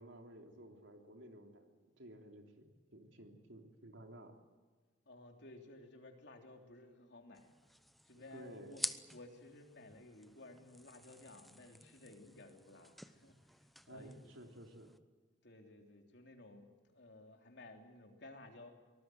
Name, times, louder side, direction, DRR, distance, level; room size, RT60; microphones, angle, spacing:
voice 1, 0.0-1.6 2.0-4.4 8.1-8.9 13.9-14.9, right 1 dB, 85° right, 3 dB, 3.3 m, -54 dB
voice 2, 5.0-7.5 8.1-8.8 9.1-14.3 15.4-18.7, left 2 dB, 60° left, 3 dB, 3.4 m, -56 dB
sound 1, 7.3-15.0, equal, ahead, 0.7 m, -49 dB
24.0 x 19.5 x 7.9 m, 1.3 s
head